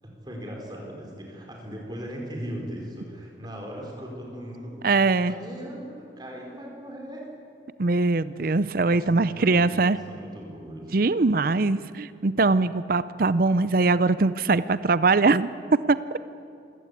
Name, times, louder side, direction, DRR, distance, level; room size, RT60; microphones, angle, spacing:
voice 1, 0.0-4.9 5.2-7.2 8.9-10.9, equal, 20° right, 0 dB, 4.9 m, -38 dB
voice 2, 4.8-5.3 7.8-10.0 10.9-15.5 15.9-16.2, right 3 dB, 50° right, 15 dB, 0.6 m, -22 dB
27.0 x 17.5 x 8.6 m, 2.5 s
head